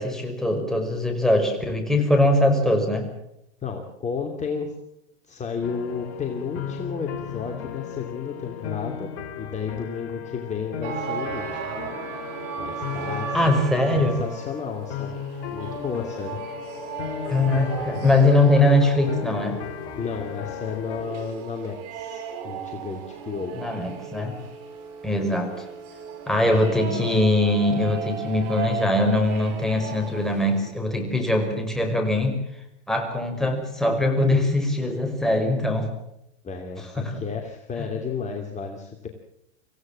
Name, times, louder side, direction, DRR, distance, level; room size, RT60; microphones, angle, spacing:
voice 1, 0.0-3.1 13.3-14.2 17.3-19.6 23.5-24.4 25.0-25.7 26.3-32.4 32.9-35.9 36.8-37.1 37.8-37.9, left 1 dB, ahead, 2 dB, 5.7 m, -22 dB
voice 2, 3.6-4.7 5.3-9.1 9.4-11.7 12.6-13.6 13.9-15.1 15.5-16.4 20.0-23.6 26.5-26.6 36.4-39.1, left 6 dB, 20° left, 3 dB, 2.7 m, -32 dB
sound 1, 5.6-21.1, left 8 dB, 45° left, 3.6 m, -36 dB
sound 2, 10.8-30.7, right 6 dB, 45° right, 5.7 m, -36 dB
26.0 x 16.5 x 7.6 m, 0.82 s
hypercardioid pair, 115°, 35 cm